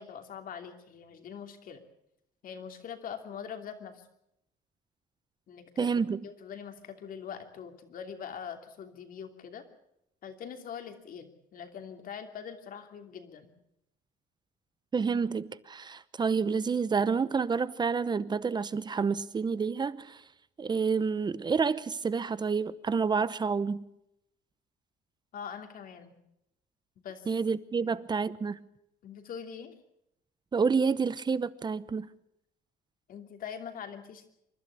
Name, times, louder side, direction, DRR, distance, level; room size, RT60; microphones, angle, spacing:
voice 1, 0.0-1.8 2.4-4.0 5.5-5.9 6.2-9.6 10.2-13.5 25.3-26.2 27.0-27.3 27.8-28.0 29.0-29.7 33.1-34.3, left 7 dB, 55° left, 2.8 m, -43 dB
voice 2, 5.8-6.3 14.9-20.2 20.6-23.9 27.3-28.6 30.5-32.1, right 5 dB, 25° right, 0.8 m, -29 dB
27.5 x 12.0 x 8.4 m
cardioid pair, 110°, 17 cm